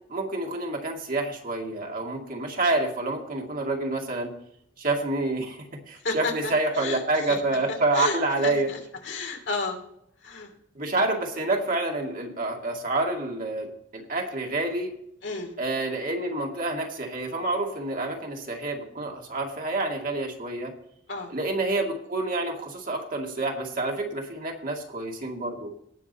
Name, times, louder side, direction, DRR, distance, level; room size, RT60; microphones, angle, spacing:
voice 1, 0.1-4.3 4.8-5.6 5.9-8.7 10.8-14.9 15.6-20.7 21.3-25.7, right 2 dB, 50° right, 1 dB, 2.3 m, -28 dB
voice 2, 6.0-7.0 7.3-7.4 7.9-8.2 8.4-9.8 10.2-10.5 15.2-15.5 21.1-21.3, left 3 dB, 70° left, 2 dB, 2.9 m, -31 dB
18.5 x 6.2 x 4.2 m, 0.75 s
head